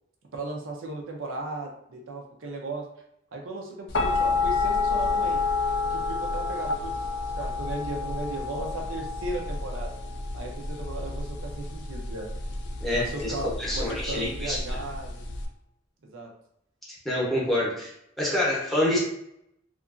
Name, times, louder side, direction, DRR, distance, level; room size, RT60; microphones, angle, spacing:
voice 1, 0.3-2.8 3.3-5.4 5.9-6.9 7.3-9.9 10.3-12.3 12.9-15.2 16.0-16.3, right 2 dB, 80° right, 1 dB, 0.5 m, -36 dB
sound 1, 3.9-15.5, left 3 dB, 60° left, 0.4 m, -29 dB
voice 2, 12.8-13.3 13.6-14.6 17.0-17.9 18.2-19.0, left 1 dB, ahead, -5 dB, 0.7 m, -26 dB
2.8 x 2.4 x 2.4 m, 0.75 s
head